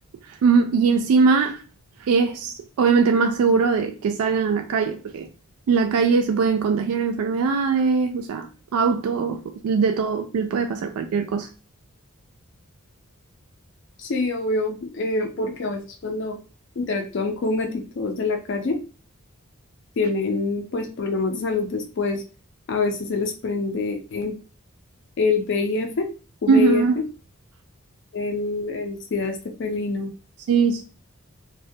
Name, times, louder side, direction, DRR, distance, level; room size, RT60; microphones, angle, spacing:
voice 1, 0.4-1.6 2.0-5.3 5.7-11.5 26.5-27.0 30.5-30.8, right 5 dB, 85° right, 0.3 m, -21 dB
voice 2, 14.0-16.4 16.8-18.8 20.0-22.2 22.7-24.4 25.2-26.1 26.4-26.8 28.1-30.1, left 3 dB, 55° left, 0.4 m, -26 dB
2.2 x 2.1 x 2.6 m
head